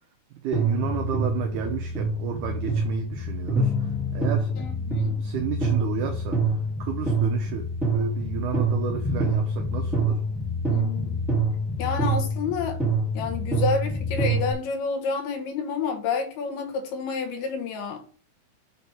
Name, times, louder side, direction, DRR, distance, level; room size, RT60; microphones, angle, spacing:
voice 1, 0.4-4.5 5.2-6.4 6.8-10.2, right 9 dB, 75° right, 4 dB, 1.9 m, -31 dB
sound 1, 0.5-14.5, right 1 dB, ahead, 2.3 m, -26 dB
voice 2, 4.5-5.1 10.7-11.2 11.8-12.8 13.1-18.0, left 5 dB, 85° left, 4 dB, 3.4 m, -29 dB
7.3 x 4.3 x 4.8 m, 0.42 s
omnidirectional pair, 4.4 m